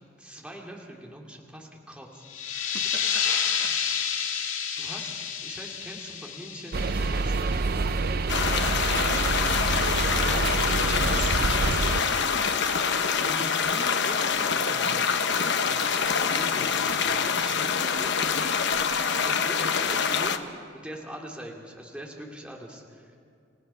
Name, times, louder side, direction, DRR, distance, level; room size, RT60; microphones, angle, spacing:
voice 1, 0.2-2.2 4.8-11.1 13.2-15.3 15.6-18.3 18.8-20.4 20.7-23.3, equal, 5° right, -1 dB, 2.3 m, -42 dB
sound 1, 2.2-7.6, left 7 dB, 85° left, 1.9 m, -30 dB
voice 2, 2.7-3.7 10.8-12.7, right 4 dB, 70° right, 3 dB, 1.8 m, -40 dB
sound 2, 6.7-12.0, right 3 dB, 50° right, 0.6 m, -27 dB
sound 3, 8.3-20.4, left 6 dB, 60° left, 1.0 m, -25 dB
28.5 x 17.0 x 5.6 m, 2.4 s
head